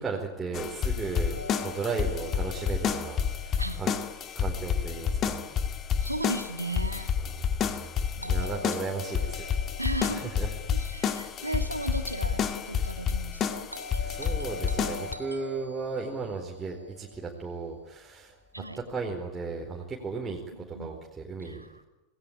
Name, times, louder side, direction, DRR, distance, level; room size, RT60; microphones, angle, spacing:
voice 1, 0.0-3.9 4.3-5.4 7.2-9.5 10.1-10.5 14.0-21.8, right 4 dB, 15° right, -2 dB, 4.5 m, -36 dB
sound 1, 0.5-15.1, left 7 dB, 30° left, 2.3 m, -30 dB
Doorbell, 1.3-5.3 8.2-12.4 13.7-18.1, left 2 dB, 90° left, 2.9 m, -45 dB
voice 2, 6.0-7.1 8.2-8.6 9.8-10.3 10.7-13.7 18.5-18.8 20.6-20.9 21.4-21.7, right 2 dB, 85° right, 7 dB, 2.6 m, -35 dB
27.5 x 20.5 x 8.8 m, 1.1 s
figure-of-eight pair, 90°, 0 cm